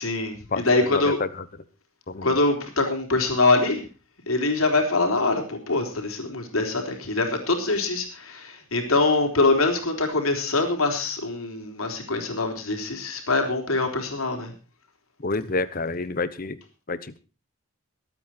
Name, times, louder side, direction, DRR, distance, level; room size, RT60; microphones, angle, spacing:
voice 1, 0.0-1.2 2.2-3.8 4.3-14.5, left 3 dB, 85° left, 4 dB, 3.9 m, -24 dB
voice 2, 0.9-1.4 2.1-2.4 15.2-16.6 16.9-17.2, left 3 dB, 40° left, 15 dB, 1.0 m, -28 dB
22.5 x 9.0 x 4.4 m, 0.34 s
head